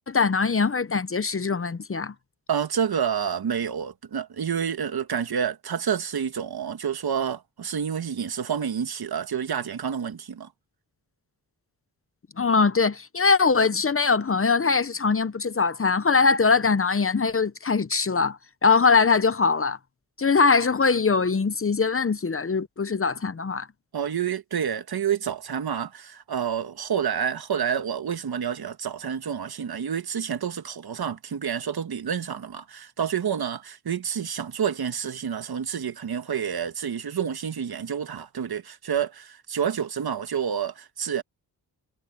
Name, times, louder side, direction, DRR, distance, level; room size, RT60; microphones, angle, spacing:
voice 1, 0.1-2.1 12.4-19.8 20.2-23.7, left 4 dB, 35° left, 1.0 m, -22 dB
voice 2, 2.5-10.5 23.9-41.2, right 8 dB, 65° right, 1.9 m, -29 dB
cardioid pair, 60°, 40 cm